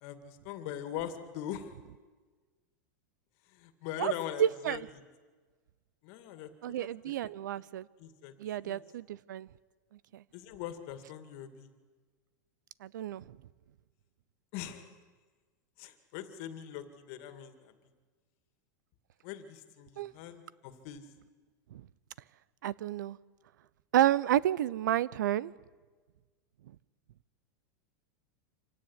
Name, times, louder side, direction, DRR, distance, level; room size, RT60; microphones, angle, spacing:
voice 1, 0.0-1.8 3.5-4.8 6.0-6.5 6.8-7.0 7.2-7.3 8.0-8.3 8.6-8.8 10.3-11.7 14.5-15.0 15.8-17.7 19.2-21.1, left 10 dB, 50° left, 2.3 m, -42 dB
voice 2, 4.4-4.9 6.6-7.9 8.4-9.5 10.1-10.2 12.8-13.4 20.0-20.1 21.7-21.8 22.6-23.2 23.9-25.5, right 12 dB, 85° right, 0.7 m, -30 dB
26.0 x 17.0 x 9.9 m
supercardioid pair, 145°, 10 cm